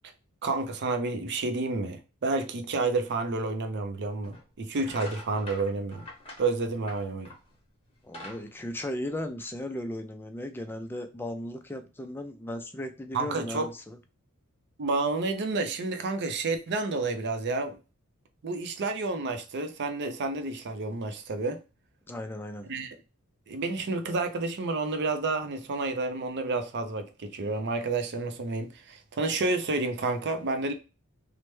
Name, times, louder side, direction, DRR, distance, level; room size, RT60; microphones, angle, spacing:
voice 1, 0.4-6.1 6.4-7.3 13.1-13.7 14.8-17.8 18.4-21.6 22.7-23.0 23.5-30.7, right 3 dB, 50° right, 0.5 m, -30 dB
sound 1, 4.2-4.4 4.8-7.5 7.9-9.6, left 1 dB, 25° left, 1.0 m, -45 dB
voice 2, 8.0-14.0 22.1-22.7, left 1 dB, 10° left, 0.3 m, -36 dB
3.2 x 2.1 x 3.0 m
head